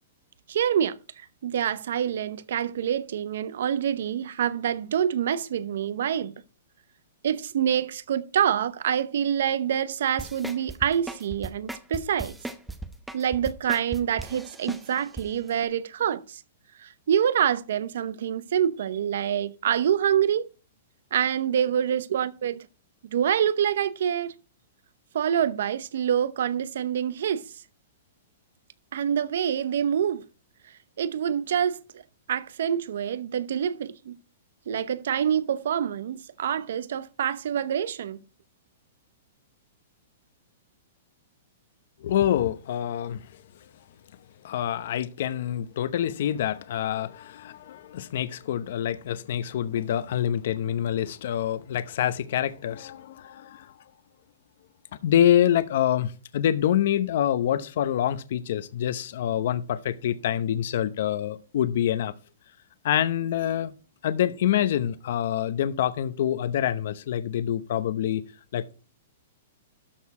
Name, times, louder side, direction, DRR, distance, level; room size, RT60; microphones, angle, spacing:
voice 1, 0.5-6.4 7.2-12.4 13.1-16.4 16.8-20.5 21.1-22.7 23.1-24.3 25.1-27.4 28.9-30.2 31.0-32.0 32.3-34.2 34.7-38.2, right 9 dB, 70° right, 0.7 m, -26 dB
sound 1, 10.2-15.3 15.6-15.7, right 2 dB, 5° right, 0.7 m, -36 dB
voice 2, 42.0-43.3 44.4-53.7 55.0-62.1 62.8-63.7 64.0-68.2 68.5-68.7, left 10 dB, 60° left, 0.8 m, -26 dB
13.0 x 4.6 x 4.8 m
hypercardioid pair, 160°, 0 cm